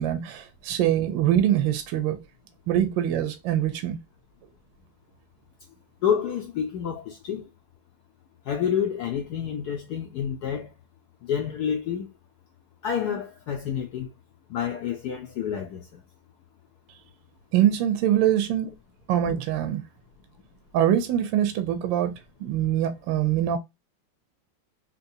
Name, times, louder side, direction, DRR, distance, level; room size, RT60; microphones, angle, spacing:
voice 1, 0.0-2.2 2.7-4.0 17.5-18.7 19.1-19.8 20.7-22.1 22.4-23.6, right 11 dB, 75° right, 1.2 m, -23 dB
voice 2, 6.0-7.5 8.5-10.7 11.2-12.1 12.8-14.1 14.5-16.0, left 8 dB, 80° left, 0.9 m, -28 dB
3.7 x 2.8 x 2.6 m
omnidirectional pair, 2.3 m